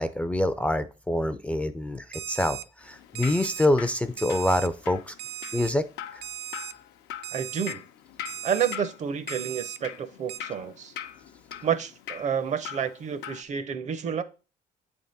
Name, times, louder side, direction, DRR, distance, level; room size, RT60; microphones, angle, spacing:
voice 1, 0.0-2.6 2.9-5.1 5.5-5.8, left 1 dB, 10° left, 0.4 m, -25 dB
Alarm, 2.1-2.6 3.2-3.7 4.2-4.7 5.2-5.7 6.2-6.7 7.2-7.7 8.3-8.8 9.3-9.8 10.3-10.4, right 11 dB, 85° right, 0.5 m, -37 dB
Drip, 2.8-13.4, left 11 dB, 85° left, 0.6 m, -42 dB
voice 2, 7.3-7.8 8.4-10.9 11.6-14.2, right 7 dB, 45° right, 0.6 m, -29 dB
8.2 x 3.6 x 4.0 m
cardioid pair, 110°, 17 cm